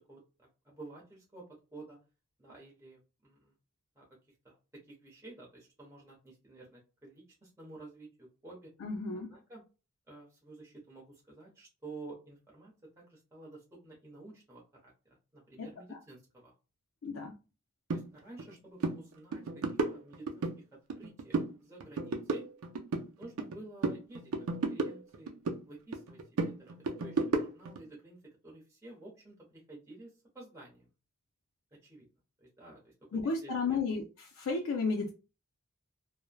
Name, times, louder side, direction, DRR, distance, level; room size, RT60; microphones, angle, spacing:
voice 1, 0.0-1.4 1.7-2.0 2.4-3.5 3.9-4.1 4.4-4.6 4.9-8.7 9.3-9.6 10.1-16.5 17.9-19.6 19.9-20.6 20.9-22.5 23.2-25.3 25.7-28.2 28.4-30.9 31.8-32.1 32.4-32.9 33.4-33.8, right 2 dB, 15° right, 0.9 m, -51 dB
voice 2, 8.8-9.3 15.6-16.0 17.0-17.4 33.1-35.1, left 4 dB, 70° left, 0.4 m, -33 dB
sound 1, 17.9-18.0 18.4-18.5 18.8-19.0 19.3-20.6 20.9-21.5 21.8-23.6 23.8-25.6 25.9-27.8, right 3 dB, 80° right, 0.5 m, -33 dB
3.1 x 2.0 x 2.2 m
head